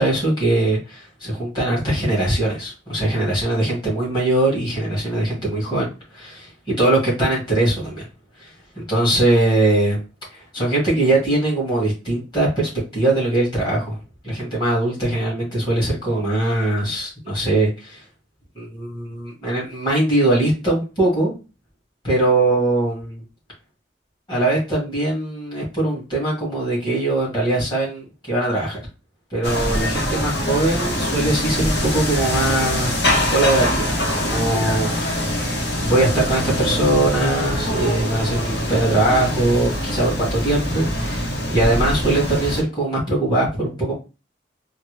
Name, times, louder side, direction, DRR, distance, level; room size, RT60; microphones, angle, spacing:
voice 1, 0.0-5.9 6.1-8.1 8.4-8.5 8.8-10.0 10.3-14.0 14.2-18.0 18.6-21.4 22.0-23.2 24.3-28.8 29.3-33.0 33.3-35.4 35.7-44.0, right 2 dB, 25° left, -6 dB, 2.0 m, -21 dB
sound 1, 29.4-42.6, equal, 70° left, 1.0 m, -23 dB
4.2 x 2.0 x 3.1 m, 0.30 s
head